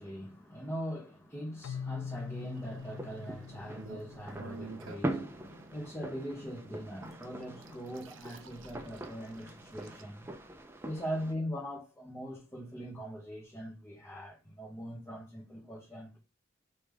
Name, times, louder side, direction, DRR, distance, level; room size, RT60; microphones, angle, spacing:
voice 1, 0.0-10.3 10.8-16.2, equal, 15° left, 1.1 m, -41 dB
Keyboard (musical), 1.6-5.3, left 6 dB, 75° left, 0.3 m, -43 dB
sound 1, 2.1-10.0, right 4 dB, 70° right, 0.5 m, -52 dB
sound 2, 2.5-11.3, right 1 dB, 10° right, 0.5 m, -43 dB
3.4 x 3.0 x 3.4 m
head